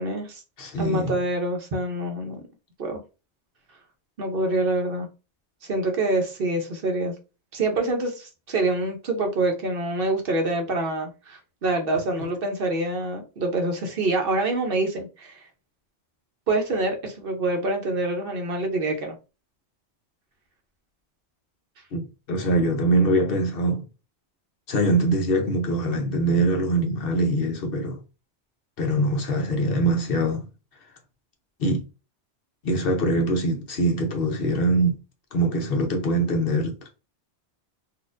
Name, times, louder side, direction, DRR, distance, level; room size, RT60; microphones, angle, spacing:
voice 1, 0.0-0.4 0.8-2.4 2.8-3.0 4.2-5.1 5.6-7.1 7.5-15.4 16.5-19.1, right 2 dB, 55° right, 0.9 m, -26 dB
voice 2, 0.6-1.1 21.9-23.8 24.7-28.0 28.8-30.5 31.6-31.8 32.6-35.0 35.3-36.8, right 1 dB, 60° left, 0.9 m, -23 dB
4.1 x 2.5 x 2.5 m
omnidirectional pair, 1.2 m